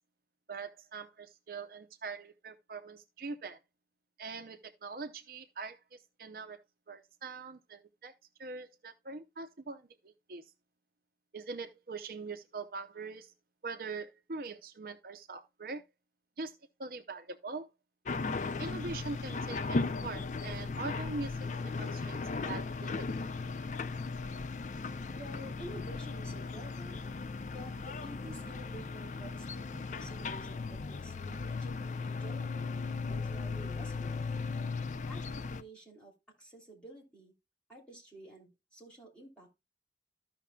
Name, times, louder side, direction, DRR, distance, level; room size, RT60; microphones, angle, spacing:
voice 1, 0.5-3.6 4.2-6.6 6.9-8.1 8.4-10.4 11.3-13.3 13.6-15.8 16.4-16.5 16.8-17.7 18.6-23.1, right 4 dB, 55° right, 0.6 m, -43 dB
sound 1, 18.0-35.6, left 4 dB, 45° left, 0.4 m, -37 dB
voice 2, 25.1-27.0 27.4-34.2 35.0-36.1 36.4-37.3 37.7-39.6, right 1 dB, 5° left, 3.0 m, -51 dB
14.0 x 5.8 x 2.2 m
head